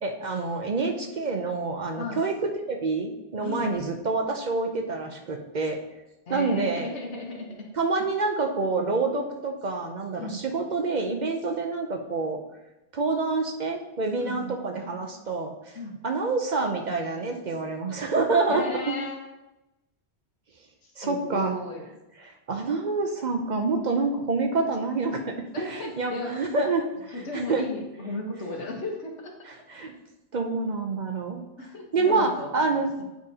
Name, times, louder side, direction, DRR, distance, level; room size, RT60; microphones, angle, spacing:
voice 1, 0.0-5.8 6.3-6.9 7.7-12.4 12.9-19.0 21.0-21.6 22.2-27.7 28.4-28.6 29.5-29.9 30.3-31.4 31.9-32.9, right 3 dB, 50° right, 2 dB, 0.7 m, -27 dB
voice 2, 2.0-2.3 3.4-3.8 6.3-7.7 10.2-10.4 14.2-14.5 15.7-16.0 18.5-19.3 21.0-21.8 25.5-26.4 27.1-29.3 31.6-33.0, left 2 dB, 90° left, 0 dB, 1.5 m, -35 dB
8.9 x 5.1 x 2.8 m, 0.97 s
omnidirectional pair, 1.1 m